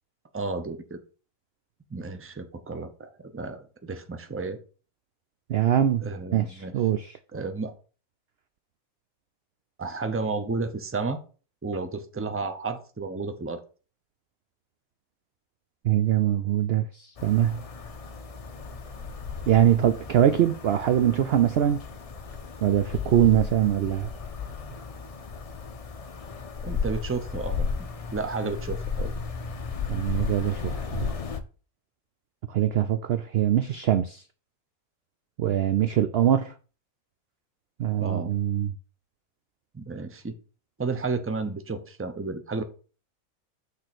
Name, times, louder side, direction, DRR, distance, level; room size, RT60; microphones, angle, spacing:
voice 1, 0.3-1.0 1.9-4.6 6.0-6.8 7.3-7.7 9.8-11.2 11.6-13.6 26.6-29.1 38.0-38.3 39.7-40.3 40.8-42.6, right 4 dB, 20° right, 0.4 m, -32 dB
voice 2, 5.5-6.1 6.3-7.1 15.8-17.6 19.5-21.8 22.6-24.1 29.9-31.1 32.5-34.2 35.4-36.5 37.8-38.7, right 11 dB, 70° right, 0.6 m, -23 dB
sound 1, 17.2-31.4, left 5 dB, 45° left, 0.4 m, -34 dB
6.4 x 3.8 x 6.0 m
omnidirectional pair, 1.5 m